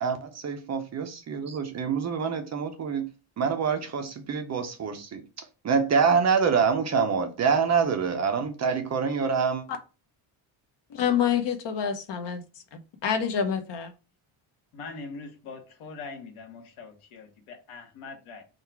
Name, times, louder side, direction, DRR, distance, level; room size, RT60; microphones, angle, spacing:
voice 1, 0.0-3.1 3.4-9.6, right 6 dB, 35° right, 0.5 m, -26 dB
voice 2, 10.9-13.9, left 8 dB, 60° left, 0.9 m, -27 dB
voice 3, 14.7-18.4, left 4 dB, 90° left, 1.2 m, -42 dB
3.7 x 2.3 x 4.4 m
cardioid pair, 170°, 48 cm